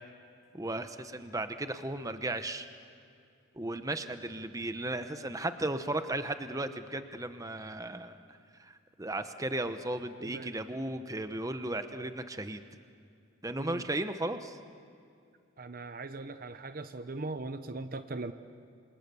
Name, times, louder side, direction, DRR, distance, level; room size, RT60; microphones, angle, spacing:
voice 1, 0.5-2.7 3.6-8.2 8.6-12.6 13.4-14.6, right 1 dB, 15° right, 9 dB, 0.9 m, -35 dB
voice 2, 10.2-10.5 11.9-12.1 13.6-13.9 15.6-18.3, right 3 dB, 45° right, 10 dB, 0.8 m, -40 dB
27.5 x 27.0 x 6.9 m, 2.4 s
head